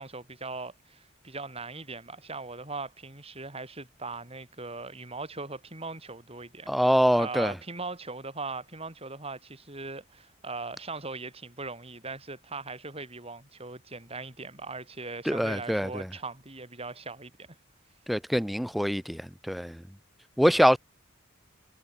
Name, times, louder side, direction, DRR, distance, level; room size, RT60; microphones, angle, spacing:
voice 1, 0.0-6.9 7.2-17.3, right 3 dB, 30° right, 7.1 m, -39 dB
voice 2, 6.7-7.5 15.3-16.1 18.1-19.8 20.4-20.8, equal, ahead, 0.8 m, -24 dB
head